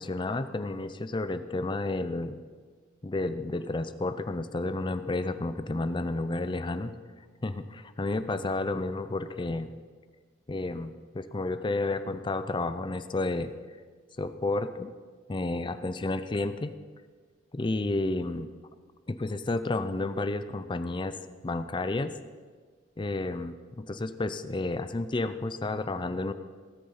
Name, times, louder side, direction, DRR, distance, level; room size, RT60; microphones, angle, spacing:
voice 1, 0.0-2.4 3.0-7.0 7.4-9.7 10.5-13.5 14.2-14.9 15.3-16.7 17.5-18.5 19.1-21.2 21.4-22.1 23.0-26.3, left 2 dB, 25° left, 12 dB, 0.5 m, -31 dB
17.5 x 6.6 x 5.6 m, 1.6 s
head